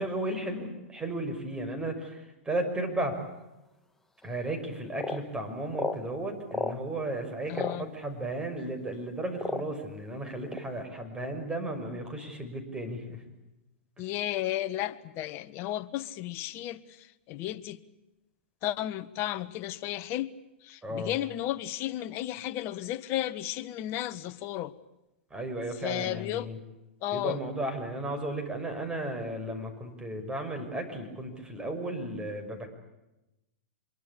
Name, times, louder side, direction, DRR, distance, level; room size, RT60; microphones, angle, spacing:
voice 1, 0.0-3.2 4.2-13.2 20.8-21.1 25.3-26.6 27.1-32.7, right 1 dB, 10° right, 5 dB, 6.0 m, -34 dB
sound 1, 4.2-4.3 5.0-5.2 5.7-6.0 6.5-6.8 7.5-7.8 8.6-8.7 9.4-9.8 10.5-10.6, left 2 dB, 5° left, 1.7 m, -32 dB
voice 2, 7.5-7.9 14.0-17.8 18.6-20.3 20.6-24.7 25.8-26.5 27.0-27.4, left 13 dB, 40° left, 11 dB, 1.5 m, -33 dB
25.5 x 23.0 x 8.5 m, 0.96 s
hypercardioid pair, 120°, 7 cm